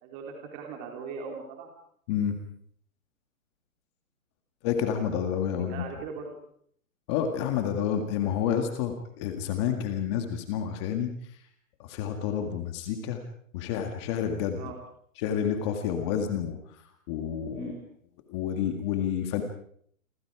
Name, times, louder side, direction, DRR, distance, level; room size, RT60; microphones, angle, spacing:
voice 1, 0.0-1.7 5.5-6.3 14.5-14.8 17.5-17.8, right 5 dB, 20° right, 1 dB, 3.5 m, -39 dB
voice 2, 2.1-2.4 4.6-5.8 7.1-11.1 11.8-13.2 13.5-14.6 15.2-16.6 17.1-17.7 18.3-19.4, left 8 dB, 20° left, 6 dB, 1.9 m, -29 dB
28.5 x 23.5 x 4.9 m, 0.64 s
hypercardioid pair, 165°, 42 cm